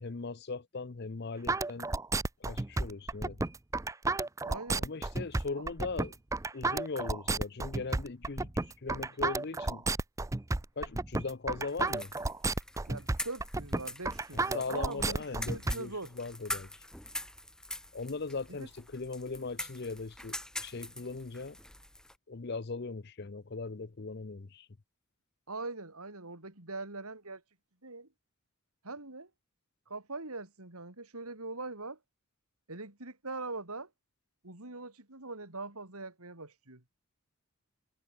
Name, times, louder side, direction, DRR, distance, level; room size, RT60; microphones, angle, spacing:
voice 1, 0.0-1.9 2.4-3.4 4.8-6.2 6.5-9.8 10.8-12.1 14.3-16.7 17.9-21.6 22.3-24.7, left 4 dB, 45° left, 0.6 m, -39 dB
sound 1, 1.5-15.7, right 3 dB, 15° right, 0.5 m, -32 dB
voice 2, 4.4-4.9 12.9-16.1 18.5-18.7 25.5-27.4 27.8-28.1 28.8-29.3 29.9-32.0 32.7-33.9 34.4-36.8, right 3 dB, 85° right, 4.3 m, -42 dB
sound 2, 11.7-22.2, left 1 dB, 5° left, 1.4 m, -44 dB
head